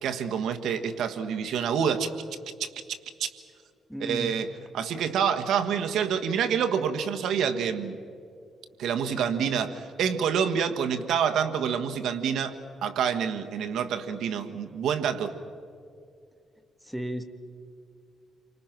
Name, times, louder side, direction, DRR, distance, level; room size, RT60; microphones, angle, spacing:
voice 1, 0.0-2.1 2.6-2.7 3.2-3.3 4.0-4.5 4.7-8.0 8.8-12.5 12.8-15.3, right 7 dB, 80° right, 7 dB, 1.5 m, -27 dB
voice 2, 3.9-4.4 16.8-17.2, equal, ahead, 7 dB, 1.6 m, -34 dB
29.5 x 25.0 x 6.1 m, 2.4 s
cardioid pair, 130°, 0 cm